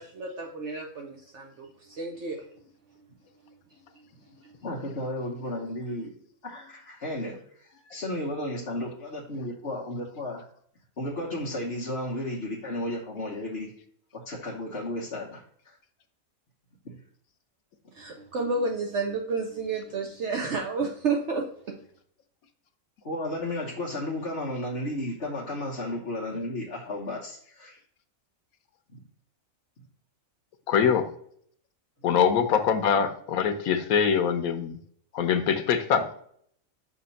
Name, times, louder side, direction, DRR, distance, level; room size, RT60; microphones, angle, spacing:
voice 1, 0.0-2.5 4.4-4.5 17.9-21.5, right 4 dB, 60° right, 1.0 m, -31 dB
voice 2, 4.6-6.1 6.4-10.5 11.0-13.7 14.1-15.8 16.8-16.9 23.0-27.8 28.9-29.0, left 1 dB, 50° left, 1.3 m, -33 dB
voice 3, 30.7-31.1 32.0-34.8 35.1-36.1, left 7 dB, 85° left, 1.2 m, -23 dB
6.0 x 2.9 x 5.3 m
omnidirectional pair, 1.4 m